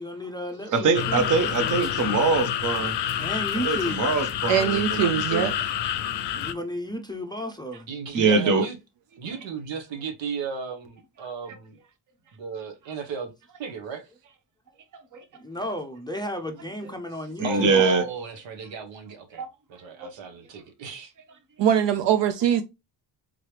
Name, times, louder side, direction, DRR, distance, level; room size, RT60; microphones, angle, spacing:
voice 1, 0.0-1.9 3.2-4.2 6.3-7.9 15.3-17.9, left 1 dB, 10° left, 0.4 m, -33 dB
voice 2, 0.7-2.9 3.6-5.5 8.1-8.6 15.1-15.2 17.4-18.0 19.4-19.5 20.0-20.1, right 4 dB, 45° right, 0.8 m, -23 dB
sound 1, 0.9-6.5, left 10 dB, 70° left, 0.5 m, -28 dB
voice 3, 4.5-5.5 21.6-22.6, right 10 dB, 75° right, 0.5 m, -22 dB
voice 4, 7.9-8.8 9.2-11.8 12.3-13.3 13.6-14.1 17.4-19.4 19.7-21.1, right 5 dB, 90° right, 1.1 m, -35 dB
3.8 x 3.1 x 3.2 m
wide cardioid pair, 140°, 43 cm